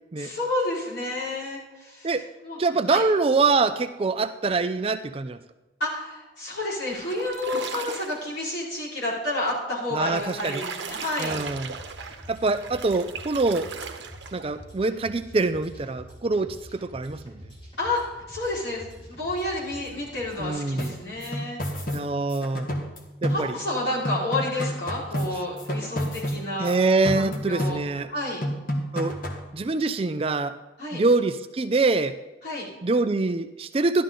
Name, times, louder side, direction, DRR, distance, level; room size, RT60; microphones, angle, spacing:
voice 1, 0.2-2.1 2.4-3.0 5.8-11.4 17.8-21.6 23.3-26.8 27.1-27.8 28.1-28.4 30.8-31.0 32.4-32.7, left 2 dB, 65° left, -6 dB, 4.7 m, -30 dB
voice 2, 2.6-5.4 9.9-10.6 11.2-11.8 12.3-13.7 14.3-17.4 20.4-20.9 21.9-22.7 23.2-23.5 26.6-28.1 28.9-29.1 29.5-30.5 30.9-32.1 32.8-34.0, right 3 dB, 30° right, 10 dB, 0.4 m, -24 dB
sound 1, 6.9-8.3 9.9-14.6, right 5 dB, 70° right, 1.0 m, -37 dB
sound 2, 11.2-20.5, equal, 25° left, 3.9 m, -46 dB
sound 3, 20.8-23.8 24.0-26.7 27.0-28.1 28.4-29.5, equal, 45° left, 1.5 m, -31 dB
12.5 x 12.0 x 3.8 m, 1.1 s
head